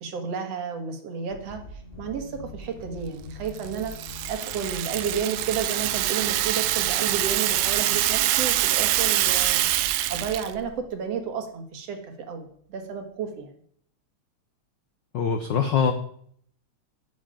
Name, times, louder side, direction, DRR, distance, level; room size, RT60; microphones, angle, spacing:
voice 1, 0.0-3.9 4.3-12.0 12.3-13.5, right 6 dB, 60° right, 6 dB, 2.5 m, -32 dB
sound 1, 1.3-11.5, equal, 15° left, 2.6 m, -43 dB
Rattle (instrument), 3.6-10.5, right 15 dB, 90° right, 2.0 m, -25 dB
voice 2, 15.1-15.9, left 6 dB, 80° left, 8 dB, 1.0 m, -23 dB
9.9 x 6.5 x 8.9 m, 0.63 s
omnidirectional pair, 3.3 m